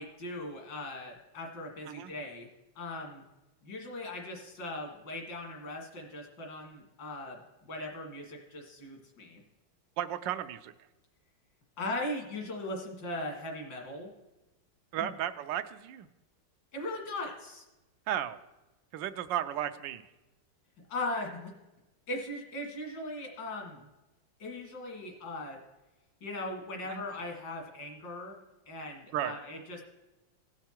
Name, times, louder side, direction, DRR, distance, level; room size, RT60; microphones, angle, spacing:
voice 1, 0.0-2.5 2.8-3.2 3.6-9.4 11.8-14.1 15.0-15.1 16.7-17.6 20.9-21.5 22.1-23.9 24.4-25.6 26.2-28.4 28.7-29.8, left 2 dB, 75° left, 1 dB, 2.6 m, -39 dB
voice 2, 10.0-10.7 14.9-16.1 18.1-18.4 18.9-20.0 26.9-27.0 29.1-29.3, right 11 dB, 90° right, 10 dB, 1.3 m, -34 dB
16.5 x 5.8 x 4.4 m, 1.0 s
omnidirectional pair, 2.0 m